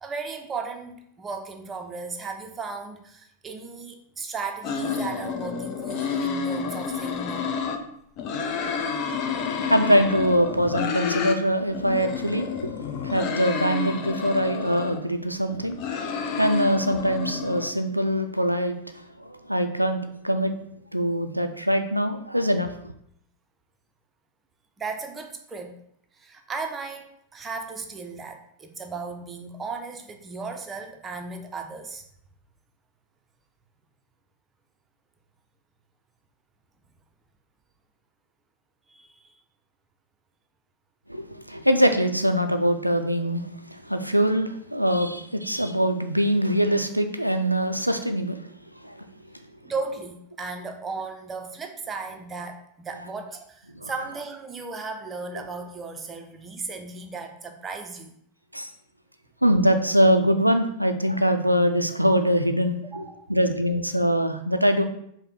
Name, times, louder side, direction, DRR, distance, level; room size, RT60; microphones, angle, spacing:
voice 1, 0.0-7.5 24.8-25.8 26.2-32.0 38.9-39.3 49.6-58.1 62.9-63.3, right 4 dB, 20° right, 4 dB, 0.6 m, -36 dB
sound 1, 4.6-7.8 8.2-11.4 11.7-15.0 15.5-17.7, left 6 dB, 40° left, 0.4 m, -30 dB
voice 2, 9.5-16.1 16.4-20.5 20.9-22.7 41.1-48.4 48.8-49.0 53.7-53.9 58.5-58.7 59.4-63.0 63.3-64.8, equal, 90° right, 7 dB, 0.3 m, -23 dB
4.9 x 2.1 x 4.2 m, 0.70 s
figure-of-eight pair, 90°, 0 cm